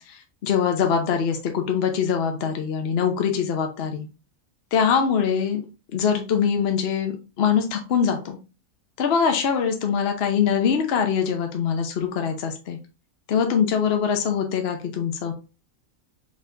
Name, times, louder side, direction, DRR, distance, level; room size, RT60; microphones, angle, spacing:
voice 1, 0.1-4.1 4.7-5.6 5.9-8.4 9.0-12.8 13.3-15.3, left 7 dB, 55° left, 5 dB, 0.8 m, -23 dB
4.0 x 3.6 x 2.6 m, 0.31 s
omnidirectional pair, 1.6 m